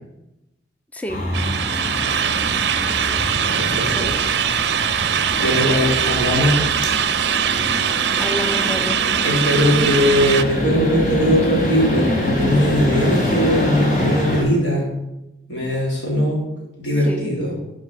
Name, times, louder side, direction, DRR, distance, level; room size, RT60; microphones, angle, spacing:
voice 1, 0.9-1.2 4.0-4.2 8.0-9.0 16.8-17.3, equal, 10° left, 6 dB, 0.4 m, -29 dB
sound 1, 1.1-14.4, left 1 dB, 45° left, 1.9 m, -25 dB
sound 2, 1.3-10.4, right 8 dB, 65° right, 0.5 m, -21 dB
voice 2, 3.4-4.1 4.5-6.5 9.2-14.9 15.5-16.4 16.8-17.5, equal, 85° left, -4 dB, 3.2 m, -20 dB
7.6 x 4.8 x 5.3 m, 0.93 s
head